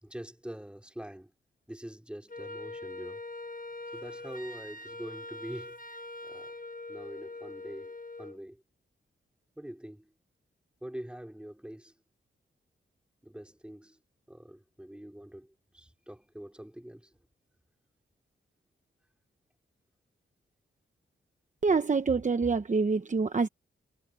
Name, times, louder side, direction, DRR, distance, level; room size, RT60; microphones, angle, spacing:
voice 1, 0.0-1.3 1.7-3.2 3.9-6.0 6.2-6.5 6.9-8.6 9.6-10.1 10.8-11.9 13.2-14.0 14.3-17.1, right 1 dB, 5° right, 2.6 m, -44 dB
Wind instrument woodwind instrument, 2.3-8.4, left 2 dB, 40° left, 1.3 m, -43 dB
voice 2, 21.6-23.5, right 4 dB, 35° right, 1.0 m, -26 dB
wide cardioid pair, 95°, 21 cm